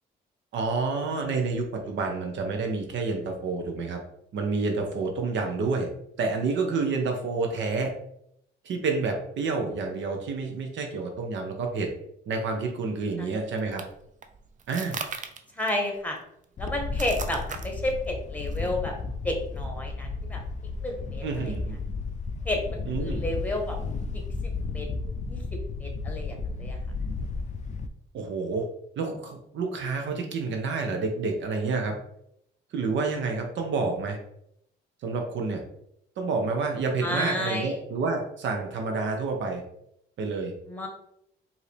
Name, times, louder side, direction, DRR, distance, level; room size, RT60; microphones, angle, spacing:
voice 1, 0.5-4.0 4.3-5.9 6.2-7.9 8.6-11.9 12.3-13.8 14.7-15.0 21.2-21.8 22.9-23.2 28.1-28.7 29.0-32.0 32.7-34.2 35.0-35.6 36.2-39.6 40.2-40.5, right 4 dB, 70° right, 3 dB, 0.8 m, -29 dB
sound 1, 13.0-21.6, right 5 dB, 40° right, 0.5 m, -42 dB
voice 2, 15.5-16.2 16.6-18.9 19.2-20.4 20.8-21.5 22.4-23.8 24.1-24.2 24.7-24.9 25.3-25.4 25.8-26.8 37.0-37.8 40.7-40.9, left 1 dB, 10° left, 2 dB, 1.2 m, -31 dB
Wind, 16.6-27.9, left 4 dB, 40° left, 0.4 m, -33 dB
4.7 x 2.8 x 3.3 m, 0.75 s
cardioid pair, 90°, 20 cm